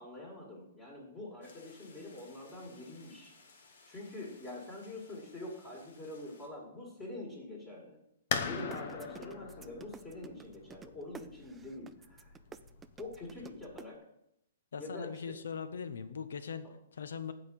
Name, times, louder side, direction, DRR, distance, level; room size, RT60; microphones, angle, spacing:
voice 1, 0.0-3.3 3.8-8.0 8.4-12.4 13.0-14.0 14.8-15.2 16.6-16.7, left 2 dB, 15° left, -3 dB, 2.0 m, -45 dB
sound 1, 1.4-6.5, left 4 dB, 65° left, 2.2 m, -61 dB
sound 2, 8.3-13.8, left 6 dB, 50° left, 0.9 m, -40 dB
sound 3, 8.6-13.8, right 6 dB, 10° right, 0.3 m, -49 dB
voice 2, 14.7-16.7 16.9-17.3, left 6 dB, 85° left, 11 dB, 0.9 m, -40 dB
8.0 x 5.0 x 7.3 m, 0.77 s
hypercardioid pair, 160°, 0 cm